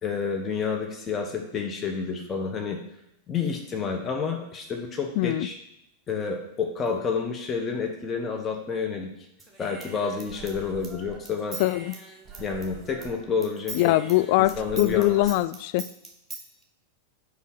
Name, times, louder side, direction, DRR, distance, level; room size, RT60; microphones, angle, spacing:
voice 1, 0.0-2.8 3.3-5.5 6.1-9.1 9.6-11.6 12.4-13.9 14.4-15.2, left 5 dB, 25° left, 2 dB, 1.0 m, -29 dB
voice 2, 5.2-5.5 11.6-11.9 13.7-15.8, left 17 dB, 50° left, 13 dB, 0.3 m, -22 dB
Human voice / Scissors, 9.4-13.2 13.4-16.4, right 4 dB, 10° right, 1.3 m, -42 dB
5.5 x 4.8 x 6.5 m, 0.82 s
figure-of-eight pair, 90°, 0 cm